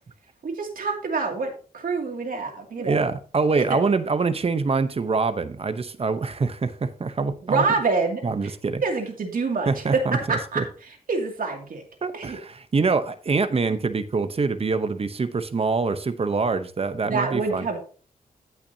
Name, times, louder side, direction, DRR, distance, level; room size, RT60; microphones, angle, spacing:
voice 1, 0.4-3.1 3.7-3.8 7.4-8.5 8.8-9.8 10.3-11.8 12.1-12.4 13.7-13.8 17.0-17.8, right 4 dB, 70° right, 2.4 m, -27 dB
voice 2, 2.8-7.6 8.2-8.8 9.7-10.6 12.0-17.6, right 4 dB, 40° right, 0.8 m, -25 dB
15.0 x 5.9 x 2.7 m
wide cardioid pair, 115°, 15 cm